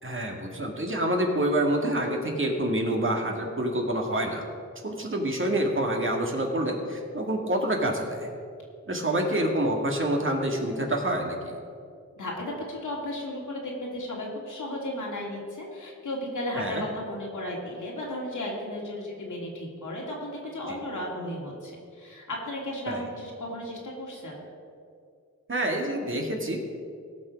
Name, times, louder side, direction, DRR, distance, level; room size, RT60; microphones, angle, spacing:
voice 1, 0.0-4.4 4.8-8.3 8.9-11.5 16.6-16.8 20.7-20.8 22.9-23.0 25.5-26.6, right 1 dB, 40° right, 1 dB, 2.1 m, -27 dB
voice 2, 12.2-24.4, left 1 dB, 80° left, -2 dB, 2.5 m, -35 dB
17.0 x 6.2 x 5.2 m, 2.3 s
cardioid pair, 50°, 30 cm